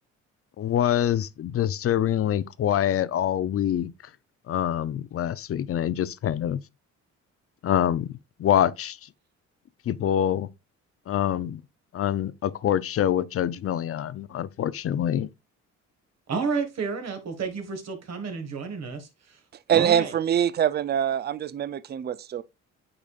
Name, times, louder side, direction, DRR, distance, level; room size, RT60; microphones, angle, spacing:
voice 1, 0.6-3.9 4.5-6.6 7.6-8.1 8.4-9.0 9.9-10.5 11.1-11.6 11.9-15.3, left 10 dB, 50° left, 0.5 m, -25 dB
voice 2, 16.3-19.4 19.7-20.1, right 5 dB, 60° right, 1.7 m, -31 dB
voice 3, 19.7-22.4, right 9 dB, 35° right, 0.4 m, -24 dB
8.7 x 5.0 x 2.4 m
cardioid pair, 90°, 30 cm